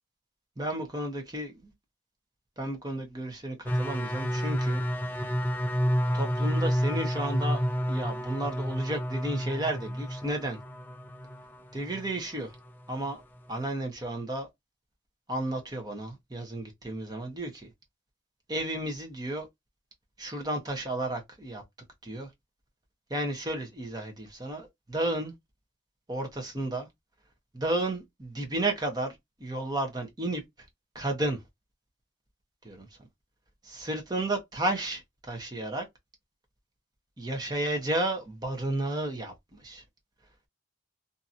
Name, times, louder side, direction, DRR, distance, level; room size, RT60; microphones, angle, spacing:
voice 1, 0.6-1.5 2.6-4.8 6.1-10.6 11.7-12.5 12.9-13.2 13.5-14.5 15.3-17.7 18.5-19.5 20.2-21.6 22.0-22.3 23.1-25.3 26.1-26.9 27.5-30.4 30.9-31.4 32.6-32.9 33.6-35.9 37.2-39.8, right 1 dB, 20° right, 0.9 m, -32 dB
sound 1, 3.7-12.2 12.6-13.1, equal, 10° left, 0.3 m, -30 dB
2.8 x 2.7 x 2.5 m
head